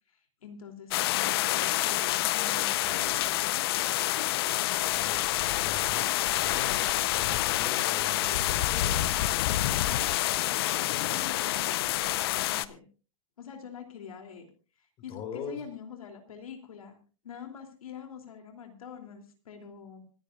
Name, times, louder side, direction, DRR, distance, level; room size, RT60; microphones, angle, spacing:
voice 1, 0.1-3.5 11.1-12.1 12.4-12.9 13.4-14.5 14.8-17.0 17.2-20.0, left 7 dB, 85° left, 4 dB, 2.9 m, -45 dB
sound 1, 0.9-12.7, left 15 dB, 45° left, 0.7 m, -27 dB
voice 2, 4.8-9.5 15.1-15.6, left 5 dB, 30° left, 6 dB, 4.1 m, -42 dB
26.0 x 10.0 x 2.4 m, 0.36 s
hypercardioid pair, 145°, 18 cm